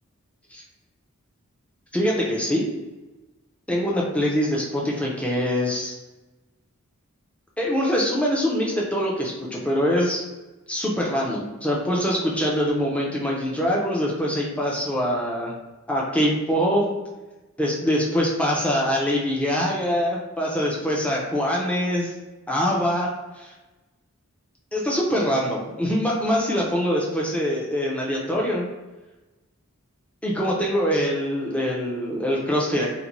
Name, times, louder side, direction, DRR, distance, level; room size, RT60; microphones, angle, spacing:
voice 1, 1.9-2.7 3.7-5.9 7.6-10.2 10.7-15.5 15.9-16.9 17.6-22.1 22.5-23.1 23.4-23.5 24.7-28.7 30.2-32.9, equal, 5° left, -4 dB, 0.4 m, -24 dB
2.5 x 2.1 x 2.9 m, 1.1 s
head